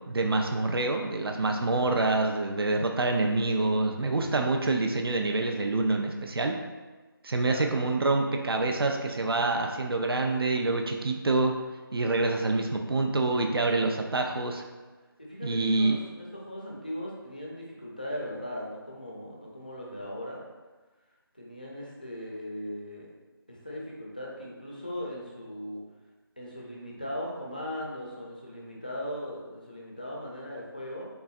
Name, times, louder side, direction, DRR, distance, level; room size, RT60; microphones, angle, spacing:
voice 1, 0.1-6.6 7.2-11.5 11.9-14.6 15.4-16.0, right 2 dB, 75° right, 3 dB, 0.5 m, -26 dB
voice 2, 7.4-7.8 15.3-20.4 21.3-23.1 23.5-25.8 26.4-31.1, left 1 dB, 20° left, -3 dB, 0.4 m, -38 dB
4.0 x 3.4 x 2.4 m, 1.3 s
figure-of-eight pair, 175°, 13 cm